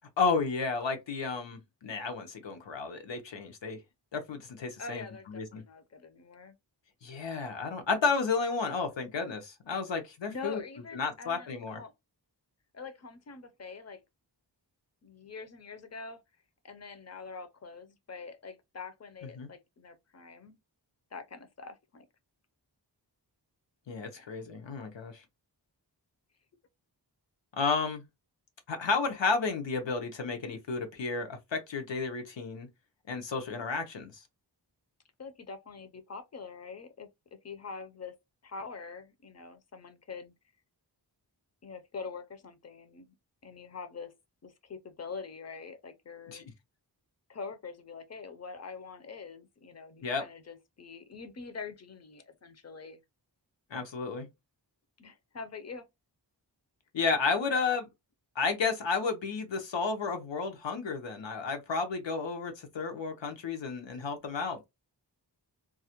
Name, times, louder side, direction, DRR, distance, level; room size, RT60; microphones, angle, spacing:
voice 1, 0.2-3.8 4.1-5.6 7.0-10.6 10.9-11.8 19.4-19.5 23.9-25.2 27.6-28.0 28.7-32.7 33.1-34.2 46.3-46.4 50.0-50.2 53.7-54.3 56.9-57.9 58.4-64.7, left 4 dB, 90° left, 0.7 m, -32 dB
voice 2, 4.8-6.6 10.3-11.9 12.7-14.0 15.0-16.2 16.6-20.6 21.1-22.1 24.2-24.3 35.2-38.2 38.4-40.3 41.6-43.1 43.4-44.1 44.4-46.4 47.3-53.0 55.0-55.9, left 4 dB, 40° left, 0.5 m, -44 dB
2.3 x 2.1 x 2.8 m
wide cardioid pair, 80°, 43 cm